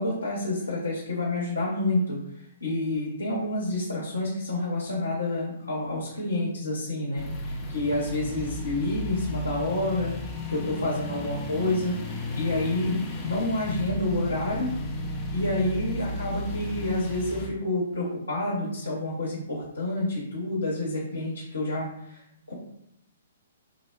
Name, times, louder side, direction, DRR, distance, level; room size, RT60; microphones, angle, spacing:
voice 1, 0.0-2.2 2.6-10.1 10.5-14.7 15.3-22.2 22.5-22.6, left 2 dB, 75° left, -5 dB, 0.7 m, -28 dB
sound 1, 7.1-17.5, left 1 dB, 15° left, 0.5 m, -34 dB
3.5 x 2.1 x 2.3 m, 0.76 s
figure-of-eight pair, 120°, 0 cm